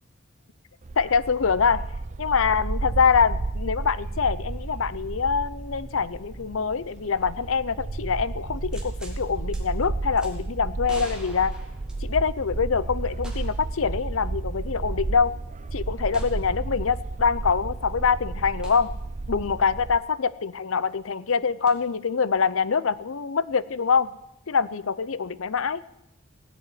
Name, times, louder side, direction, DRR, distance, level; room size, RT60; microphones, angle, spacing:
Bark, 0.8-20.0, right 2 dB, 35° right, 0.5 m, -32 dB
voice 1, 1.0-1.8 2.2-11.6 12.0-15.3 15.7-18.9 19.3-24.1 24.5-25.8, left 5 dB, 80° left, 17 dB, 0.7 m, -24 dB
sound 1, 8.7-9.2 9.5-9.6 10.2-10.3 10.9-12.4 13.2-13.7 14.0-14.1 16.1-16.4 18.6-18.8 21.7-21.8, right 1 dB, 5° right, 2.4 m, -44 dB
17.0 x 8.4 x 9.3 m, 0.88 s
head